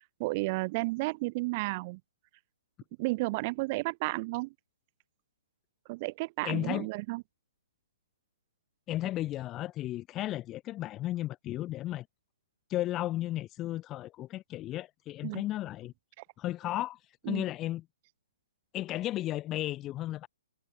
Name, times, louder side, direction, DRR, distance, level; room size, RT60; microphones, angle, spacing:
voice 1, 0.2-2.0 3.0-4.5 5.9-7.2 15.2-15.4 17.3-17.4, right 24 dB, 35° right, 0.4 m, -32 dB
voice 2, 6.4-6.9 8.9-12.1 12.7-15.9 16.4-17.0 17.3-17.8 18.7-20.3, left 15 dB, 25° left, 0.6 m, -34 dB
figure-of-eight pair, 130°, 0 cm